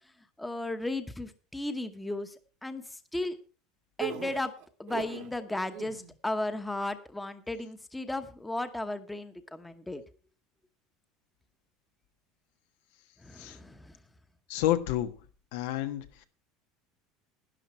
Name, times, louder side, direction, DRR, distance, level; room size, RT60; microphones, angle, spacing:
voice 1, 0.4-2.3 2.6-3.4 4.0-4.5 4.8-10.0 13.2-13.9, left 2 dB, 5° left, 10 dB, 1.0 m, -35 dB
sound 1, 4.0-5.3 5.7-6.1, right 9 dB, 60° right, 1.4 m, -38 dB
voice 2, 14.5-15.2 15.5-16.3, left 13 dB, 85° left, 9 dB, 1.3 m, -30 dB
12.0 x 10.5 x 4.4 m, 0.36 s
cardioid pair, 150°, 0 cm